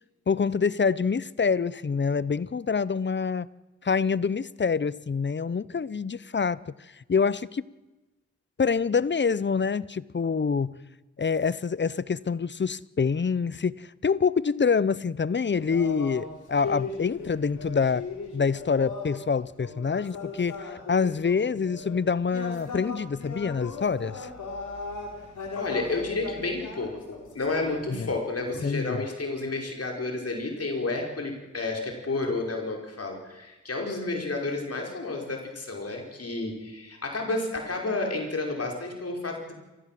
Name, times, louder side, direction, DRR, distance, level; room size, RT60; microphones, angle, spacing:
voice 1, 0.3-3.5 3.8-6.6 7.0-7.6 8.6-10.8 11.2-18.0 18.3-24.3 28.0-28.1 28.6-29.0, left 5 dB, 40° left, 0.8 m, -26 dB
sound 1, 15.5-19.2 19.6-22.0 22.2-28.8, left 4 dB, 80° left, 4.7 m, -38 dB
voice 2, 25.6-39.5, left 2 dB, 55° left, 5.4 m, -31 dB
28.0 x 15.0 x 7.7 m
cardioid pair, 50°, 29 cm